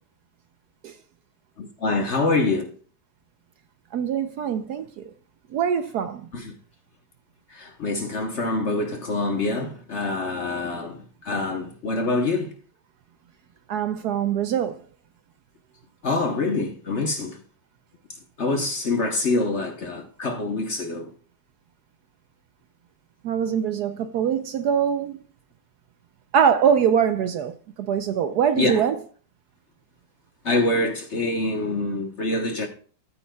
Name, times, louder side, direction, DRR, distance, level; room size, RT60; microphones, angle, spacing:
voice 1, 1.6-2.7 6.3-6.5 7.5-12.5 16.0-17.4 18.4-21.1 28.6-28.9 30.4-32.7, left 2 dB, 45° left, 1.1 m, -25 dB
voice 2, 3.9-5.1 5.5-6.3 13.7-14.8 23.2-25.2 26.3-27.5 27.8-28.9, right 8 dB, 70° right, 1.0 m, -23 dB
14.0 x 8.4 x 2.3 m
omnidirectional pair, 2.0 m